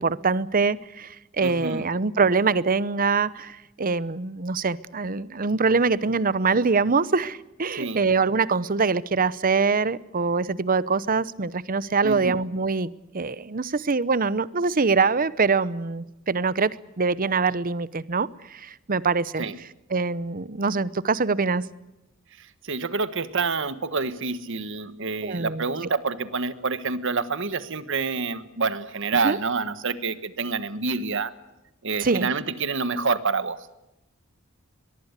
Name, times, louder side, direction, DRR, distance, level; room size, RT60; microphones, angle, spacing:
voice 1, 0.0-19.5 19.9-21.7 25.2-25.6 29.1-29.4 32.0-32.3, right 4 dB, 45° right, 18 dB, 0.8 m, -24 dB
voice 2, 1.4-1.8 7.8-8.0 12.0-12.3 19.4-19.6 22.4-31.3 31.8-33.6, right 4 dB, 65° right, 13 dB, 1.4 m, -27 dB
23.0 x 22.5 x 8.2 m, 0.95 s
head